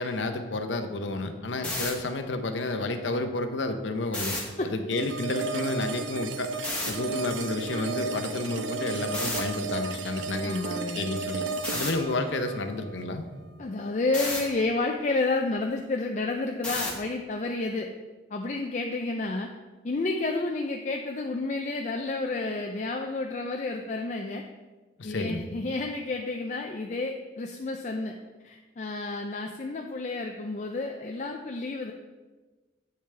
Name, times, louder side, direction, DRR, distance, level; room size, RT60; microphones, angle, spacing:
voice 1, 0.0-4.4 4.7-6.5 6.9-10.6 10.9-11.4 11.7-13.3 25.0-25.4, left 2 dB, 80° left, 8 dB, 0.7 m, -30 dB
sound 1, 1.6-1.9 4.1-4.4 6.6-6.9 9.1-9.4 11.6-11.9 14.1-14.4 16.6-17.0, left 2 dB, 5° left, 1.2 m, -31 dB
sound 2, 4.9-13.9, right 4 dB, 80° right, 0.5 m, -34 dB
voice 2, 10.4-11.0 13.6-17.9 18.3-19.5 19.8-24.4 25.0-28.2 28.4-31.9, left 3 dB, 40° left, 2 dB, 0.4 m, -30 dB
8.8 x 6.8 x 3.3 m, 1.3 s
head